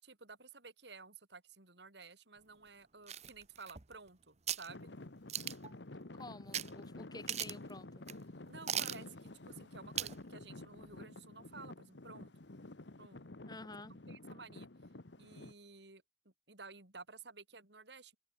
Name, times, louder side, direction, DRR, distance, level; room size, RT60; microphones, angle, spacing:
voice 1, 0.0-4.9 8.5-12.3 13.0-13.2 13.8-14.7 15.2-18.2, right 4 dB, 65° right, 4.3 m, -54 dB
sound 1, 3.1-4.1 4.5-4.7 5.3-5.7 6.5-6.7 7.0-7.1 7.3-7.7 8.1-8.2 8.7-9.0 10.0-10.2 10.6-10.7, right 9 dB, 40° right, 1.0 m, -38 dB
Traffic noise roadway noise / Engine, 4.7-15.5, left 2 dB, 70° left, 1.4 m, -50 dB
voice 2, 6.1-8.0 13.5-13.9, left 2 dB, 20° left, 2.5 m, -50 dB
head